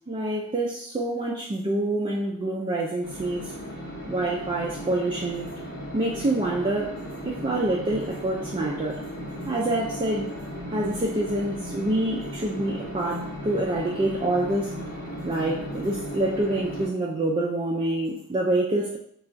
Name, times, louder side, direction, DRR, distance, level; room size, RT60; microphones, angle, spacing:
voice 1, 0.1-3.5 4.1-5.6 5.9-7.0 7.3-9.0 9.4-10.3 10.7-14.8 15.2-19.0, right 1 dB, 25° right, -2 dB, 0.3 m, -26 dB
sound 1, 3.0-16.9, equal, 60° left, 0.8 m, -36 dB
4.2 x 2.3 x 2.5 m, 0.69 s
head